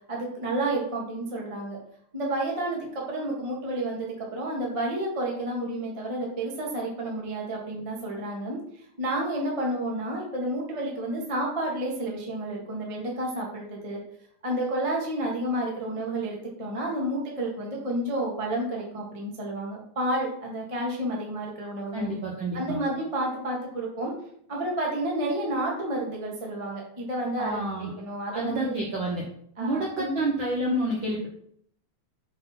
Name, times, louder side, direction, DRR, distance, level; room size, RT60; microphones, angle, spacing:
voice 1, 0.1-1.8 2.1-8.6 9.0-14.0 14.4-22.1 22.5-24.1 24.5-28.7 29.6-30.2, right 1 dB, 45° right, -2 dB, 0.4 m, -30 dB
voice 2, 21.9-22.8 27.4-27.9 28.3-29.2 29.6-31.3, right 1 dB, 75° right, -2 dB, 1.1 m, -29 dB
6.0 x 4.1 x 4.1 m, 0.67 s
omnidirectional pair, 3.4 m